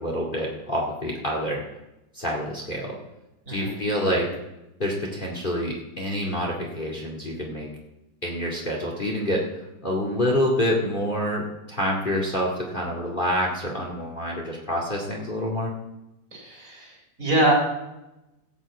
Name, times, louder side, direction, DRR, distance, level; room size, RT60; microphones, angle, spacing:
voice 1, 0.0-1.6 2.1-3.0 3.5-4.3 4.8-7.7 8.2-9.4 9.8-15.7, equal, 25° left, -1 dB, 2.2 m, -27 dB
voice 2, 3.5-3.8 16.3-17.5, right 1 dB, 40° right, -2 dB, 4.3 m, -24 dB
16.5 x 6.3 x 8.2 m, 0.94 s
omnidirectional pair, 2.2 m